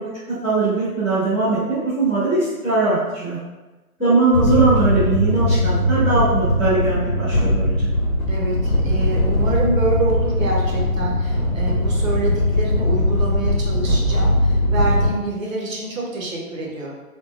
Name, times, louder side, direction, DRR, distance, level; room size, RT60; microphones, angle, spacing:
voice 1, 0.4-3.4 4.0-7.9, right 3 dB, ahead, -35 dB, 0.6 m, -20 dB
sound 1, 4.3-15.1, left 1 dB, 65° left, 0.8 m, -20 dB
voice 2, 8.3-16.9, right 2 dB, 60° right, -2 dB, 1.0 m, -26 dB
3.6 x 2.3 x 2.5 m, 1.1 s
hypercardioid pair, 155°, 45 cm